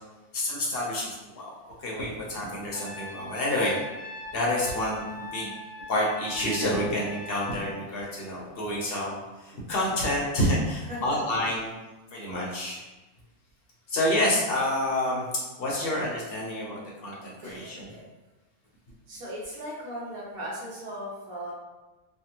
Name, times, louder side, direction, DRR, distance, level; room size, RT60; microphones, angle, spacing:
voice 1, 0.3-1.5 1.8-3.8 4.3-5.5 5.9-11.7 12.1-12.8 13.9-15.3 15.6-17.9, left 1 dB, 50° left, -4 dB, 0.8 m, -28 dB
Trumpet, 2.7-7.8, left 2 dB, 75° left, 1.0 m, -41 dB
voice 2, 10.9-11.2 17.4-18.1 19.1-21.5, equal, 70° right, -7 dB, 1.2 m, -38 dB
3.4 x 2.3 x 2.8 m, 1.1 s
omnidirectional pair, 1.6 m